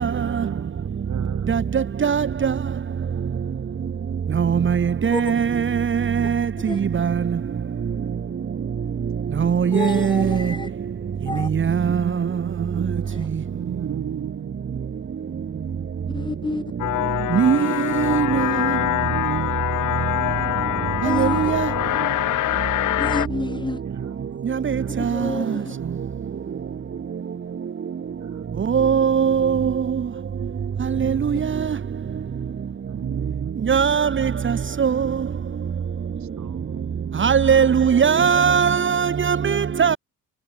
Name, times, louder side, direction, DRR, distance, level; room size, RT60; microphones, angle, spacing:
voice 1, 0.0-1.8 11.8-14.8 17.0-20.2 21.5-22.6 23.8-24.9 25.2-26.7 28.2-28.9 32.9-33.9 36.2-37.5, right 9 dB, 60° right, 5.2 m, -36 dB
voice 2, 5.0-5.4 9.4-9.6 10.1-10.2 17.4-17.6 21.2-21.3 28.7-29.6 33.7-34.1 34.8-34.9 37.2-39.4 39.8-40.0, right 7 dB, 40° right, 1.2 m, -18 dB
voice 3, 9.7-10.7 11.3-11.5 16.1-16.6 21.0-21.4 23.0-23.8 25.1-25.7, left 3 dB, 15° left, 1.4 m, -29 dB
sound 1, 16.8-23.3, left 15 dB, 75° left, 1.0 m, -24 dB
supercardioid pair, 70°, 31 cm